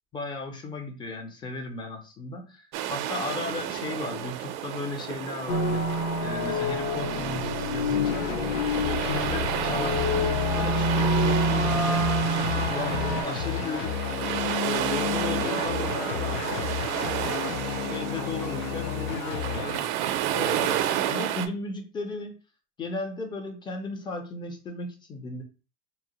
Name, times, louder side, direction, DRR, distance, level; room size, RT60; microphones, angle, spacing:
voice 1, 0.1-5.8 6.2-8.3 8.8-12.1 12.7-14.0 14.4-16.8 17.2-19.9 20.3-22.4 22.8-25.4, left 3 dB, 10° left, 4 dB, 0.4 m, -35 dB
sound 1, 2.7-21.5, right 11 dB, 60° right, 0.5 m, -31 dB
sound 2, 5.5-13.2, equal, 65° left, 0.9 m, -27 dB
sound 3, 7.9-19.8, left 10 dB, 80° left, 0.5 m, -32 dB
2.8 x 2.1 x 2.9 m, 0.34 s
supercardioid pair, 115°, 41 cm